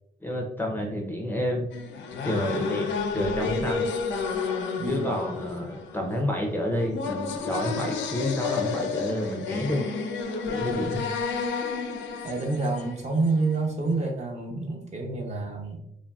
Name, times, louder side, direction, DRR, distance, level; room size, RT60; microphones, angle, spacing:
voice 1, 0.2-1.7 2.2-3.9 4.9-9.8 10.5-11.0, left 1 dB, 10° left, 0 dB, 0.5 m, -29 dB
sound 1, 1.7-13.6, left 5 dB, 70° left, 0.4 m, -31 dB
voice 2, 4.8-5.1 10.6-11.1 12.2-15.8, right 3 dB, 35° right, 1 dB, 0.7 m, -28 dB
2.9 x 2.6 x 2.2 m, 0.80 s
cardioid pair, 90°, 20 cm